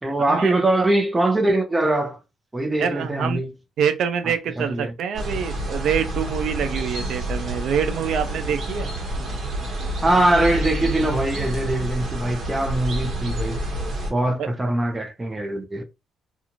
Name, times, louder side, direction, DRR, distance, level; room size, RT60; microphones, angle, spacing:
voice 1, 0.0-2.2 2.5-3.5 4.2-4.9 10.0-13.6 14.1-15.8, right 1 dB, 15° right, 0.7 m, -22 dB
voice 2, 2.8-3.4 3.8-8.9 14.4-14.5, right 8 dB, 75° right, 0.4 m, -25 dB
sound 1, 5.1-14.1, right 1 dB, 50° right, 1.2 m, -28 dB
2.5 x 2.4 x 2.9 m
cardioid pair, 90°, 0 cm